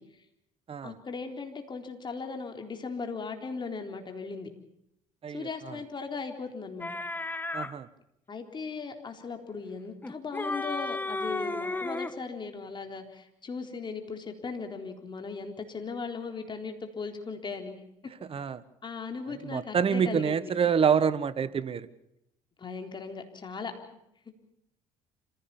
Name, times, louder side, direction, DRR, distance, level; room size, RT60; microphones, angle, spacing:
voice 1, 0.8-4.5 5.3-6.9 8.3-17.8 18.8-20.5 22.6-23.7, left 4 dB, 35° left, 4 dB, 4.0 m, -38 dB
sound 1, 6.8-7.7 10.0-12.2, left 2 dB, 15° left, 1.4 m, -33 dB
voice 2, 7.5-7.9 18.3-18.6 19.4-21.9, right 7 dB, 40° right, 16 dB, 1.3 m, -26 dB
26.5 x 16.5 x 7.1 m, 0.80 s
supercardioid pair, 80°, 14 cm